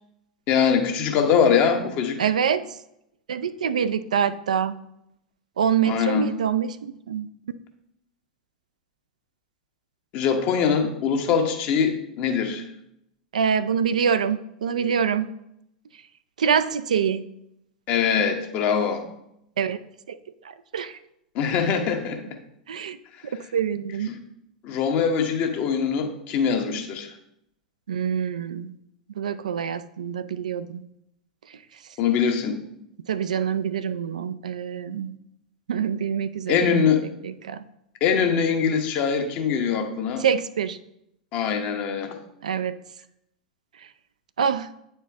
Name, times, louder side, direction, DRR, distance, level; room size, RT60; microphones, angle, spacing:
voice 1, 0.5-2.3 5.8-6.3 10.1-12.7 17.9-19.0 21.3-22.2 24.1-24.2 24.6-27.1 32.0-32.6 36.5-37.0 38.0-40.2 41.3-42.2, left 6 dB, 40° left, 5 dB, 1.0 m, -23 dB
voice 2, 2.2-2.6 3.3-4.8 5.6-7.3 13.3-15.3 16.4-17.3 19.6-19.8 20.1-20.2 20.7-21.0 22.7-23.0 23.5-24.1 27.9-28.7 29.2-30.8 33.1-35.1 35.7-36.8 37.2-37.6 40.2-40.8 42.4-42.8 44.4-44.7, right 7 dB, 70° right, 13 dB, 0.4 m, -25 dB
8.9 x 4.4 x 3.4 m, 0.79 s
figure-of-eight pair, 90°, 4 cm